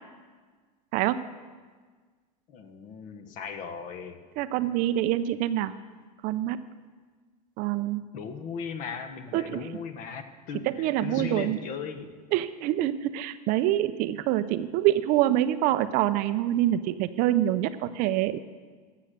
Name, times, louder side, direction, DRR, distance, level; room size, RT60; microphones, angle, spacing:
voice 1, 2.5-4.2 8.1-12.1, left 6 dB, 40° left, 9 dB, 1.0 m, -37 dB
voice 2, 4.4-5.7 6.2-6.6 7.6-8.0 9.3-9.6 10.6-11.6 12.3-18.4, right 13 dB, 45° right, 13 dB, 0.5 m, -26 dB
13.0 x 7.6 x 6.6 m, 1.5 s
supercardioid pair, 145°, 19 cm